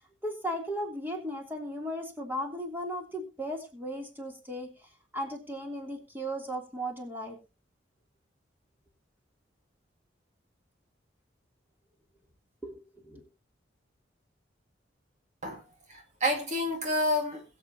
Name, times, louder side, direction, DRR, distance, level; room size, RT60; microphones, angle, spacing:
voice 1, 0.2-4.7 5.1-7.4 12.6-13.2, equal, 10° right, 3.1 m, -36 dB
voice 2, 15.4-17.4, left 1 dB, 40° right, 2.0 m, -30 dB
21.5 x 7.4 x 2.9 m
head